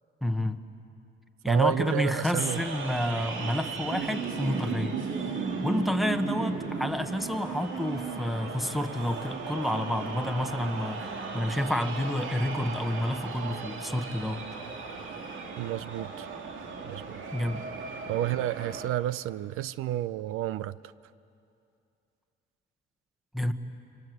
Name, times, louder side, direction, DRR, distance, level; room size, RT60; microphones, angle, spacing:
voice 1, 0.2-0.6 1.4-5.0 5.6-14.4 17.3-17.6 23.3-23.5, left 1 dB, ahead, 8 dB, 1.2 m, -29 dB
voice 2, 1.5-2.6 15.6-16.3 16.9-17.2 18.1-20.8, right 13 dB, 90° right, 17 dB, 0.5 m, -31 dB
sound 1, 2.4-18.9, right 4 dB, 70° right, 2.2 m, -36 dB
29.5 x 25.0 x 7.9 m, 2.6 s
cardioid pair, 120°, 21 cm